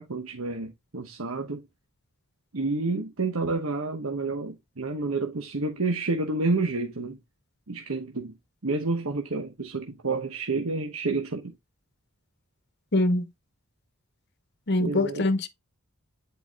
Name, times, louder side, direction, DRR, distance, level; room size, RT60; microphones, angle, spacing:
voice 1, 0.0-1.6 2.5-7.2 7.7-8.3 8.6-11.5 14.8-15.3, right 3 dB, 85° right, 1.1 m, -29 dB
voice 2, 12.9-13.3 14.7-15.5, left 2 dB, 55° left, 0.9 m, -23 dB
10.5 x 4.5 x 2.3 m
head